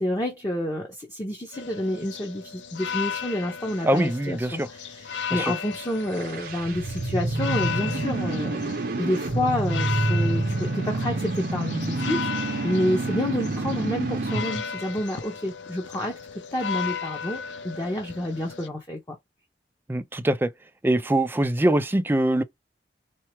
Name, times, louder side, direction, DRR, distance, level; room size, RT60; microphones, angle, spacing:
voice 1, 0.0-8.7 9.0-12.2 12.6-16.2 16.5-19.2, left 1 dB, 20° left, 0.7 m, -29 dB
sound 1, 1.5-18.7, left 7 dB, 85° left, 0.5 m, -35 dB
voice 2, 3.8-4.7 5.3-5.5 19.9-20.5 20.8-22.4, right 1 dB, 10° right, 0.4 m, -23 dB
sound 2, 6.0-14.6, right 2 dB, 55° right, 0.6 m, -28 dB
4.4 x 2.0 x 2.9 m
head